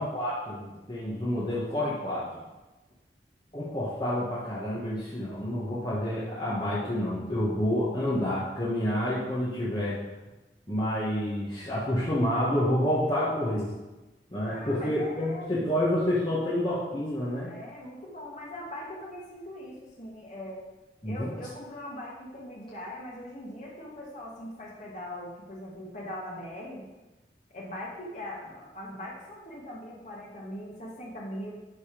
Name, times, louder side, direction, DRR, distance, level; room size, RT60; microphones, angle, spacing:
voice 1, 0.0-2.3 3.5-10.0 10.7-13.7 14.3-17.5 21.0-21.3, left 1 dB, 25° left, -8 dB, 1.6 m, -28 dB
voice 2, 14.5-15.6 17.5-20.7 21.0-26.9 27.5-31.5, left 1 dB, 45° left, -3 dB, 2.1 m, -41 dB
12.0 x 4.1 x 5.1 m, 1.1 s
head